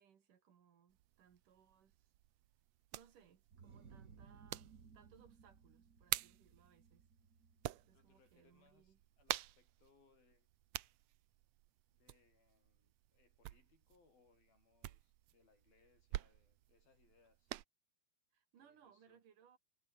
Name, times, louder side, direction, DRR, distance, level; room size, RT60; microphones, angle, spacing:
voice 1, 0.0-2.1 2.9-7.1 7.9-9.0 18.3-19.6, right 8 dB, 65° right, 3.7 m, -68 dB
sound 1, 0.9-17.6, right 15 dB, 90° right, 1.5 m, -49 dB
sound 2, 3.5-9.0, right 6 dB, 45° right, 1.1 m, -62 dB
voice 2, 7.9-10.5 11.9-17.5 18.6-19.2, left 4 dB, 80° left, 8.7 m, -73 dB
omnidirectional pair, 4.2 m